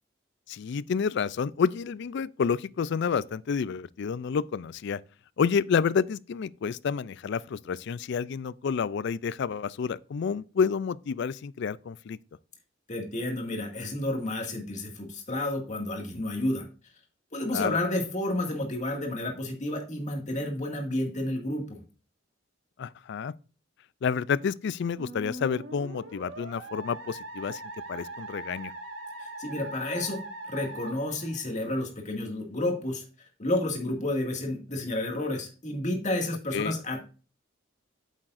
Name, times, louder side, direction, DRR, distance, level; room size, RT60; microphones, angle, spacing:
voice 1, 0.5-5.0 5.4-12.2 17.5-17.8 22.8-23.3 24.0-27.6 27.9-28.7 36.5-36.7, left 6 dB, 65° left, 0.4 m, -29 dB
voice 2, 12.9-16.7 17.3-21.8 29.2-30.2 30.5-37.0, left 1 dB, 40° left, 2.1 m, -31 dB
Musical instrument, 25.0-31.8, right 2 dB, 85° right, 1.7 m, -41 dB
8.9 x 7.5 x 2.6 m
head